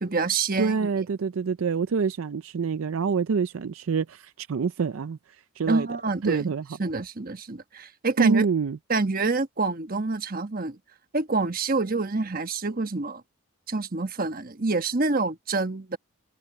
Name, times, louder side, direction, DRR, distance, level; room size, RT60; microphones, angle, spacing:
voice 1, 0.0-1.0 5.7-6.5 6.8-8.4 8.9-10.8 11.1-13.2 13.7-16.0, right 3 dB, 40° right, 1.2 m, -27 dB
voice 2, 0.6-5.2 5.6-5.9 6.2-6.6 8.2-8.8, right 5 dB, 65° right, 0.4 m, -26 dB
head